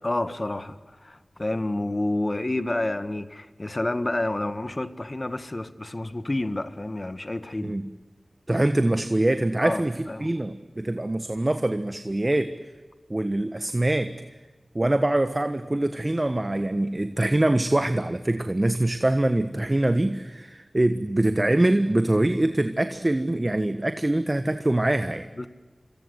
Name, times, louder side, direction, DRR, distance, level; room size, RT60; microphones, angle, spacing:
voice 1, 0.0-7.7 9.6-10.3 25.4-25.5, left 2 dB, 35° left, 1.6 m, -29 dB
voice 2, 7.6-7.9 8.5-12.5 13.1-14.2 14.7-25.3, right 1 dB, 30° right, 1.3 m, -24 dB
26.5 x 26.0 x 8.1 m
wide cardioid pair, 50°, 0 cm